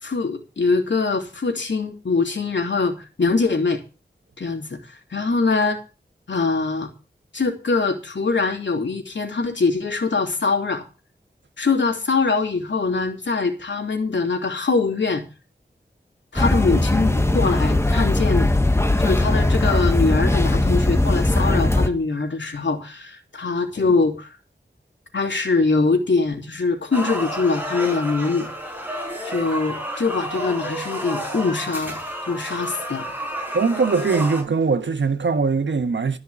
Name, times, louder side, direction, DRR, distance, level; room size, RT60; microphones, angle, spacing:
voice 1, 0.0-3.8 4.4-5.8 6.3-6.9 7.3-10.8 11.6-15.2 16.3-18.5 19.0-24.3 25.1-28.5 29.3-32.0 32.3-33.1, left 4 dB, 80° left, 3.1 m, -23 dB
sound 1, 16.4-21.9, left 2 dB, 15° left, 1.4 m, -19 dB
sound 2, 26.9-34.4, equal, 10° right, 5.0 m, -30 dB
voice 2, 33.5-36.2, right 4 dB, 85° right, 1.4 m, -21 dB
14.0 x 5.9 x 8.3 m
wide cardioid pair, 80°, 19 cm